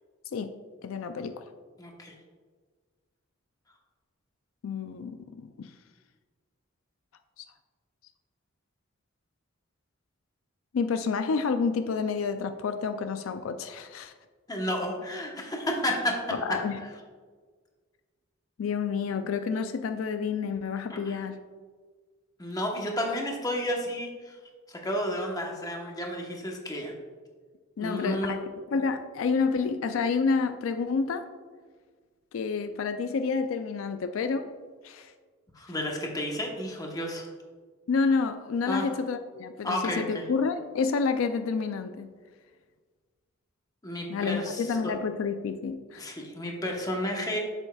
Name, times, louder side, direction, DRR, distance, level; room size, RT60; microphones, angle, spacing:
voice 1, 0.8-1.4 4.6-5.7 7.4-7.5 10.7-14.1 16.4-16.8 18.6-21.4 27.8-31.3 32.3-34.5 34.8-35.1 37.9-42.1 44.1-46.0, left 5 dB, 80° left, 9 dB, 0.4 m, -29 dB
voice 2, 1.8-2.1 14.5-16.2 16.5-16.9 20.9-21.2 22.4-24.4 24.7-26.9 27.8-28.3 35.5-37.3 38.6-38.9 39.6-40.2 43.8-44.9 46.0-47.4, equal, 20° left, 0 dB, 1.0 m, -32 dB
7.9 x 7.0 x 2.3 m, 1.5 s
head